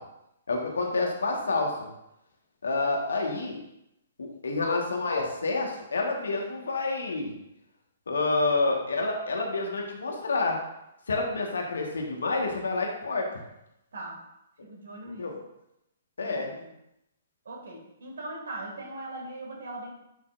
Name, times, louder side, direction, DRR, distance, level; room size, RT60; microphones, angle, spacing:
voice 1, 0.5-1.9 2.6-3.6 4.2-7.3 8.1-10.6 11.1-13.3 15.2-15.3 16.2-16.5, left 3 dB, 65° left, 1 dB, 1.5 m, -28 dB
voice 2, 14.6-15.3 16.2-16.7 17.4-19.9, right 2 dB, 60° right, -1 dB, 2.3 m, -40 dB
10.5 x 5.8 x 2.6 m, 0.84 s
figure-of-eight pair, 120°, 0 cm